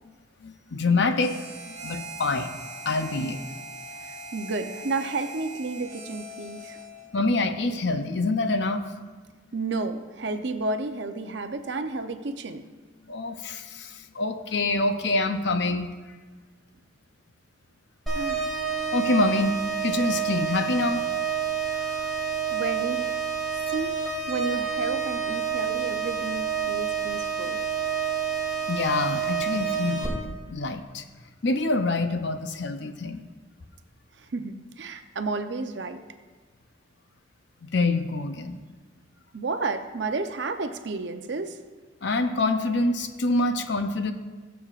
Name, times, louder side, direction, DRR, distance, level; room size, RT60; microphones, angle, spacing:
voice 1, 0.4-2.6 2.8-3.5 7.1-9.2 13.1-15.9 18.9-19.5 19.8-21.0 28.7-31.0 31.4-33.2 37.6-38.6 42.0-44.1, left 2 dB, 60° left, 8 dB, 0.6 m, -26 dB
Harmonica, 1.2-7.2, right 1 dB, 35° right, 1.0 m, -41 dB
voice 2, 4.0-6.8 9.5-12.6 18.2-18.5 21.6-21.9 22.5-23.2 23.7-27.6 34.2-36.0 39.3-41.6, right 3 dB, 60° right, 8 dB, 0.6 m, -32 dB
sound 1, 18.1-30.1, right 7 dB, ahead, 2.5 m, -28 dB
20.5 x 7.1 x 2.5 m, 1.4 s
head